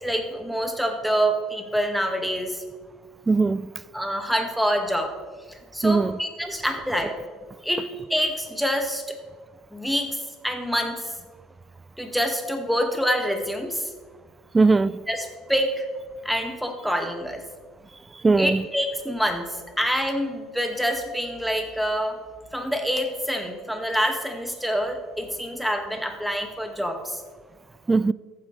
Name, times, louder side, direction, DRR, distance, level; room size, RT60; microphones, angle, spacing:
voice 1, 0.0-2.6 3.9-5.1 5.5-7.1 7.6-9.0 9.7-11.1 12.0-13.9 15.1-15.9 16.2-17.4 18.4-22.2 22.5-27.2, equal, ahead, 2.0 m, -26 dB
voice 2, 3.3-3.7 5.8-6.2 14.5-15.0 18.2-18.6 27.9-28.1, right 3 dB, 20° right, 0.4 m, -19 dB
14.5 x 10.0 x 3.3 m
hypercardioid pair, 65°, 0 cm